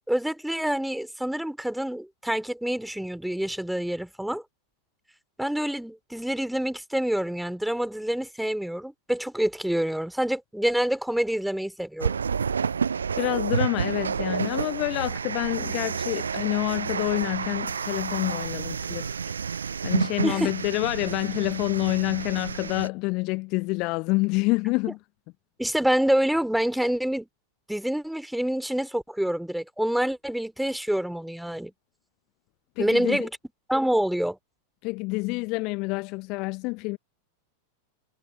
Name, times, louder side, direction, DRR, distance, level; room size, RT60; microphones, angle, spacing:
voice 1, 0.1-4.4 5.4-12.1 20.2-20.5 25.6-27.3 27.7-31.7 32.8-33.3 33.7-34.4, right 1 dB, ahead, 3.6 m, -27 dB
sound 1, 12.0-22.9, right 6 dB, 70° right, 0.5 m, -30 dB
voice 2, 13.2-19.1 19.8-25.0 32.8-33.2 34.8-37.0, left 26 dB, 40° left, 1.1 m, -27 dB
figure-of-eight pair, 90°, 0 cm